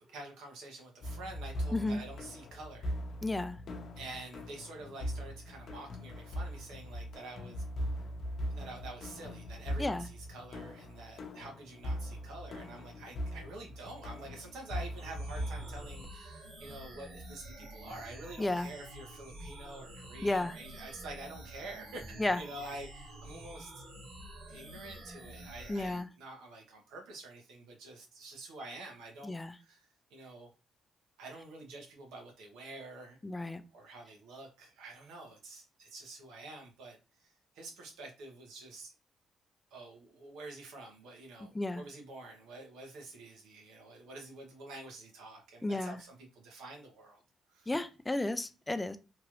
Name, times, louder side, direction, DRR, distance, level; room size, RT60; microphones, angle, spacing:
voice 1, 0.1-2.9 4.0-7.6 8.5-23.7 24.5-30.5 31.2-33.2 33.7-37.0 37.5-38.9 39.7-47.2 47.5-47.7, right 2 dB, 90° right, 1 dB, 0.9 m, -48 dB
sound 1, 1.0-16.1, equal, 55° left, 0.7 m, -40 dB
voice 2, 1.7-2.0 3.2-3.6 9.8-10.1 18.4-18.7 20.2-20.6 22.2-22.4 25.7-26.1 29.2-29.5 33.2-33.6 41.5-41.8 45.6-46.0 47.7-49.0, left 2 dB, 15° left, 10 dB, 0.3 m, -33 dB
sound 2, 15.0-26.0, right 1 dB, 55° right, 1.4 m, -49 dB
3.0 x 2.4 x 3.0 m, 0.31 s
cardioid pair, 90°, 0 cm